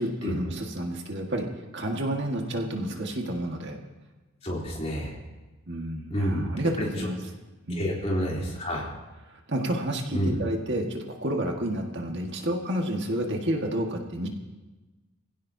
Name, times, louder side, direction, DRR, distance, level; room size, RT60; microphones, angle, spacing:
voice 1, 0.0-1.5 1.7-3.8 5.7-7.2 7.7-7.9 9.3-14.3, right 1 dB, 55° right, 1 dB, 1.7 m, -30 dB
voice 2, 4.4-5.1 6.1-6.5 6.8-7.1 7.8-8.9 10.1-10.4, equal, 30° left, -3 dB, 3.3 m, -29 dB
24.5 x 16.0 x 2.8 m, 1.1 s
head